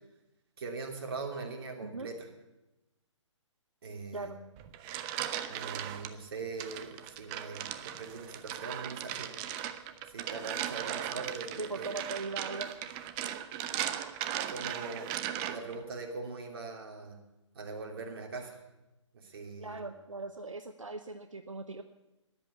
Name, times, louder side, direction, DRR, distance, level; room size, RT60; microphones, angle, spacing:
voice 1, 0.6-2.3 3.8-4.4 5.5-9.3 10.1-11.9 14.5-17.2 17.5-18.6 19.1-19.9, right 4 dB, 50° right, 2 dB, 2.9 m, -41 dB
sound 1, 4.6-6.1 6.6-15.8, right 11 dB, 20° right, 0.7 m, -38 dB
voice 2, 11.6-12.9 19.6-21.8, right 3 dB, 85° right, 7 dB, 1.0 m, -40 dB
13.5 x 10.0 x 8.5 m, 0.99 s
figure-of-eight pair, 135°, 16 cm